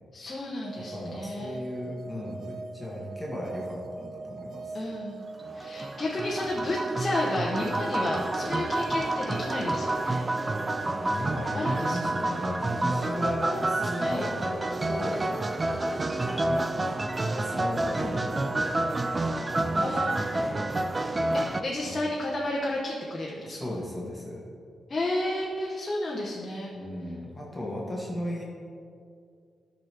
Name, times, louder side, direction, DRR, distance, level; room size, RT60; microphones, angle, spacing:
voice 1, 0.1-1.6 4.7-5.2 5.5-10.7 11.5-12.4 14.0-14.3 19.8-20.2 21.3-23.8 24.9-26.7, left 1 dB, 30° left, -4 dB, 0.9 m, -32 dB
sound 1, 0.6-19.0, right 3 dB, 65° right, 0.6 m, -42 dB
voice 2, 0.8-4.8 11.0-15.3 15.8-16.9 17.3-18.9 19.5-20.7 21.8-22.0 23.4-24.4 26.7-28.4, left 1 dB, 10° left, -5 dB, 1.5 m, -36 dB
sound 2, 5.4-21.6, right 2 dB, 20° right, 0.4 m, -29 dB
12.5 x 6.0 x 3.4 m, 2.4 s
wide cardioid pair, 130°, 0 cm